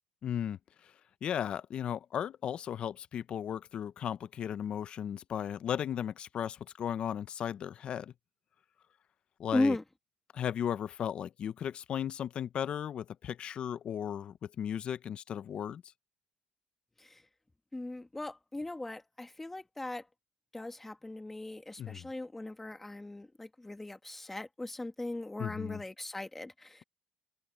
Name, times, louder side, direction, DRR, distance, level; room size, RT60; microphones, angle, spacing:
voice 1, 0.2-0.6 1.2-8.1 9.4-9.8 10.3-15.8 21.8-22.1 25.4-25.8, left 9 dB, 45° left, 0.7 m, -36 dB
voice 2, 9.5-9.8 17.0-17.2 17.7-20.1 20.5-26.8, left 2 dB, 10° left, 1.8 m, -37 dB
open air
cardioid pair, 120°, 2 cm